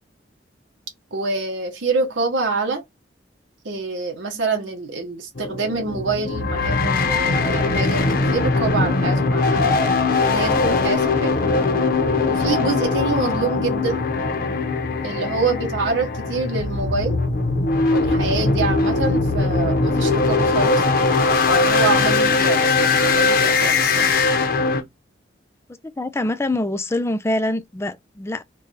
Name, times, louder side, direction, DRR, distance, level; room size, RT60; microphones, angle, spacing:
voice 1, 1.1-2.8 3.6-9.8 10.2-11.4 12.2-14.0 15.0-17.2 17.9-20.8 21.5-22.7 23.0-24.1, right 3 dB, 85° right, 0.9 m, -26 dB
sound 1, 5.4-24.8, left 3 dB, 50° left, 0.7 m, -20 dB
voice 2, 26.0-28.4, left 1 dB, 15° left, 0.3 m, -25 dB
3.2 x 2.3 x 4.0 m
head